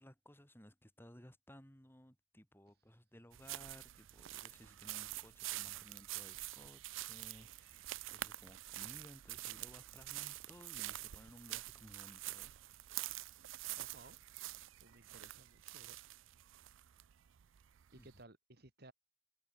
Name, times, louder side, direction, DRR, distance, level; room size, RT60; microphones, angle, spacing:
voice 1, 0.0-12.5 17.9-18.1, equal, 10° left, 7.5 m, -59 dB
sound 1, 3.3-18.2, right 16 dB, 80° right, 0.4 m, -47 dB
voice 2, 13.7-14.2 14.8-16.0 17.9-18.9, right 2 dB, 55° right, 4.3 m, -59 dB
head